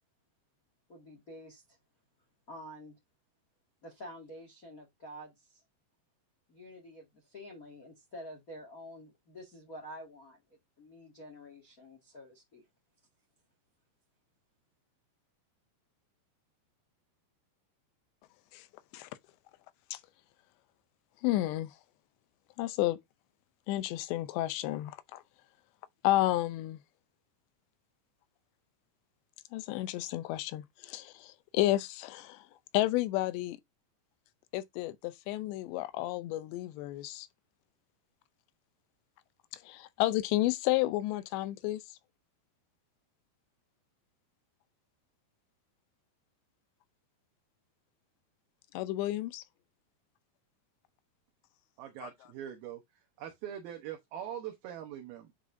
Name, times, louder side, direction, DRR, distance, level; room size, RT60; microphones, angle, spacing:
voice 1, 0.9-1.8 2.5-3.0 3.8-5.6 6.5-10.4 10.8-12.6, equal, 55° left, 0.9 m, -48 dB
voice 2, 21.2-21.7 22.6-23.0 23.7-25.2 26.0-26.8 29.5-32.5 32.7-33.6 34.5-37.3 39.6-41.8 48.7-49.4 52.0-52.1, left 16 dB, 85° left, 2.9 m, -31 dB
voice 3, 51.8-52.8 53.2-55.3, right 10 dB, 70° right, 2.5 m, -42 dB
10.0 x 5.0 x 2.6 m
omnidirectional pair, 5.1 m